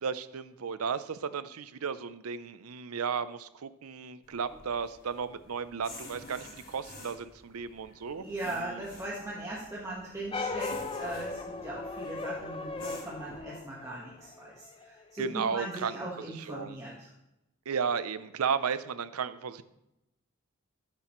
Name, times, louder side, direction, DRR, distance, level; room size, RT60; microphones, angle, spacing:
voice 1, 0.0-8.8 15.2-16.8 17.7-19.6, right 6 dB, 90° right, 14 dB, 0.6 m, -34 dB
sound 1, 4.2-13.4, left 2 dB, 45° left, 4.0 m, -51 dB
voice 2, 8.2-17.1, right 1 dB, 15° right, -6 dB, 1.4 m, -39 dB
sound 2, 10.3-14.9, left 3 dB, 25° left, 0.6 m, -38 dB
13.5 x 7.6 x 3.1 m, 0.89 s
head